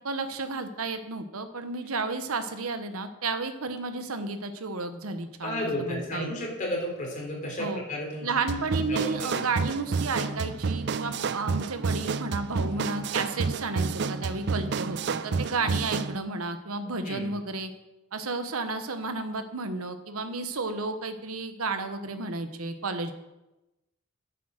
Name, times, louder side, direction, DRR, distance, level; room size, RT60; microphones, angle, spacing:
voice 1, 0.0-6.3 7.6-7.8 8.2-17.7 18.1-23.1, right 3 dB, 90° right, 9 dB, 1.1 m, -32 dB
voice 2, 5.4-8.3 8.9-9.4 17.0-17.3, left 1 dB, 35° left, -2 dB, 3.6 m, -32 dB
sound 1, 8.5-16.2, right 5 dB, 50° right, 0.4 m, -30 dB
9.7 x 8.4 x 6.5 m, 0.99 s
head